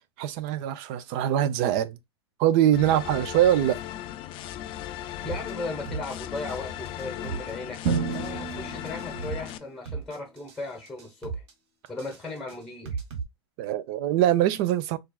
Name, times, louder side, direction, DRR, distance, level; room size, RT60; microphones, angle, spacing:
voice 1, 0.2-2.0 2.4-3.8 13.6-15.0, right 11 dB, 50° right, 0.5 m, -23 dB
sound 1, 2.7-9.6, left 12 dB, 35° left, 0.4 m, -37 dB
voice 2, 5.2-11.4 11.9-13.0, left 3 dB, 5° left, 1.0 m, -37 dB
sound 2, 5.2-5.5 5.9-6.6 6.9-7.5 7.9-8.5 8.9-9.5 9.9-10.6 10.9-11.5 11.9-13.2, right 6 dB, 65° right, 1.4 m, -36 dB
Drum, 7.8-9.8, right 5 dB, 30° right, 1.4 m, -31 dB
4.3 x 2.4 x 2.3 m
hypercardioid pair, 115°, 14 cm